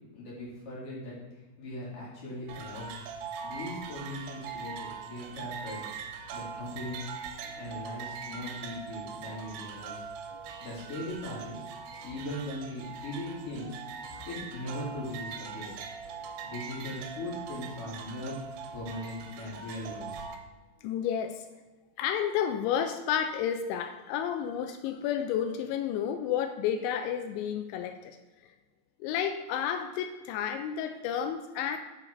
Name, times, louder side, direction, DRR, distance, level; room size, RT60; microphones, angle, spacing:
voice 1, 0.1-1.2 1.6-3.0 3.4-5.9 6.3-7.0 7.6-10.1 10.6-11.6 12.0-13.7 14.3-15.7 16.4-18.4 18.7-20.2, left 1 dB, 40° left, -7 dB, 2.8 m, -39 dB
sound 1, 2.5-20.4, right 6 dB, 80° right, 2.9 m, -42 dB
voice 2, 10.3-10.7 14.1-14.3 16.1-16.5 20.8-21.5 22.0-28.2 28.4-28.5 29.0-31.8, left 9 dB, 85° left, 7 dB, 2.9 m, -31 dB
7.4 x 4.9 x 4.8 m, 1.2 s
omnidirectional pair, 5.2 m